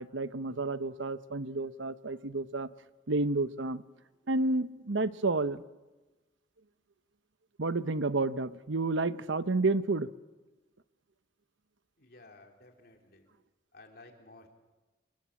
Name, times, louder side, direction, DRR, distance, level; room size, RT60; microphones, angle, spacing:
voice 1, 0.0-2.7 3.1-3.8 4.3-5.6 7.6-10.1, right 3 dB, 85° right, 14 dB, 1.0 m, -30 dB
voice 2, 12.0-13.3 13.7-14.5, left 2 dB, 55° left, 3 dB, 3.8 m, -55 dB
29.0 x 20.5 x 8.6 m, 1.2 s
head